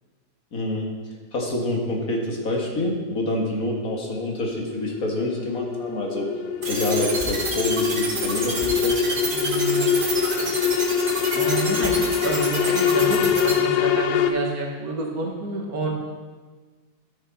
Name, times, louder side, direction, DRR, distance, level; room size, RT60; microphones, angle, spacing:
voice 1, 0.5-0.9 1.3-6.3 6.7-9.0, left 1 dB, 60° left, -1 dB, 2.1 m, -27 dB
sound 1, 3.8-14.3, left 8 dB, 85° left, 1.2 m, -24 dB
sound 2, 6.6-13.5, right 2 dB, 35° right, 1.5 m, -28 dB
voice 2, 9.3-9.8 11.3-15.9, right 3 dB, 65° right, 0 dB, 1.9 m, -28 dB
12.5 x 6.4 x 4.1 m, 1.4 s
omnidirectional pair, 1.7 m